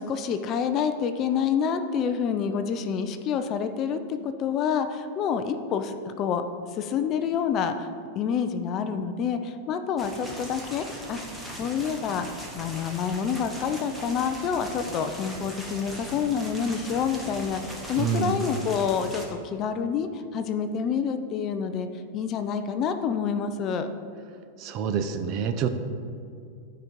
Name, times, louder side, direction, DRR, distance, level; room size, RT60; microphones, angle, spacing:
voice 1, 0.0-6.4 6.7-7.9 8.2-11.2 11.6-12.3 12.6-21.9 22.1-23.9, left 7 dB, 30° left, 9 dB, 0.5 m, -28 dB
sound 1, 10.0-19.3, right 1 dB, 5° right, 1.2 m, -39 dB
voice 2, 18.0-18.3 24.6-25.7, right 7 dB, 35° right, 9 dB, 0.6 m, -27 dB
12.5 x 5.1 x 4.6 m, 2.3 s
supercardioid pair, 160°, 0 cm